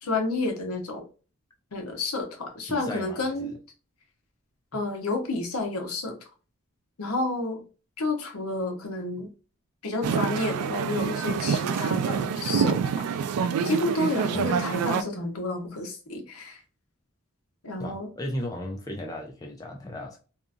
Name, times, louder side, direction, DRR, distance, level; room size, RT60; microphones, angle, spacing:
voice 1, 0.0-1.0 1.7-3.5 4.7-6.2 7.0-7.6 8.0-9.3 9.8-13.1 13.6-16.6 17.6-18.1, left 2 dB, 80° left, 0.8 m, -30 dB
voice 2, 2.7-3.6 4.7-4.8 14.3-14.6 17.8-20.2, left 1 dB, 15° left, 0.3 m, -36 dB
sound 1, 10.0-15.0, right 6 dB, 90° right, 0.3 m, -26 dB
2.7 x 2.4 x 2.3 m
head